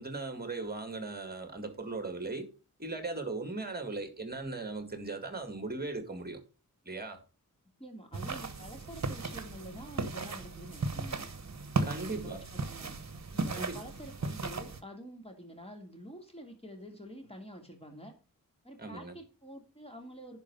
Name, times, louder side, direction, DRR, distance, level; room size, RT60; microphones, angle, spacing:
voice 1, 0.0-2.5 2.8-6.4 6.9-7.2 11.8-12.4 13.5-13.8 18.8-19.1, right 3 dB, 25° right, 2.0 m, -38 dB
voice 2, 7.8-11.3 11.9-12.9 13.3-18.1 18.6-20.4, equal, 15° left, 2.7 m, -47 dB
sound 1, 8.1-14.8, right 3 dB, 50° right, 1.1 m, -36 dB
10.5 x 4.7 x 5.4 m
wide cardioid pair, 80°, 35 cm